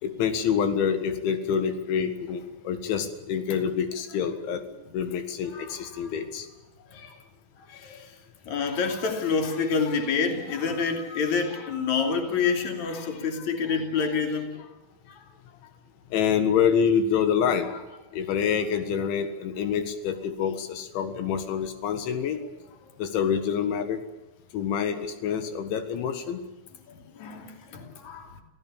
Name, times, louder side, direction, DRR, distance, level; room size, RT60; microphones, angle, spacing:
voice 1, 0.0-4.6 4.9-6.5 16.1-17.7 18.1-22.4 23.0-24.0 24.5-26.4, left 7 dB, 85° left, 8 dB, 4.1 m, -26 dB
voice 2, 5.5-6.2 6.9-7.2 7.7-8.1 8.5-14.7 15.1-15.2 26.9-28.4, left 5 dB, 45° left, 5 dB, 3.9 m, -28 dB
27.5 x 16.5 x 8.5 m, 1.0 s
omnidirectional pair, 5.2 m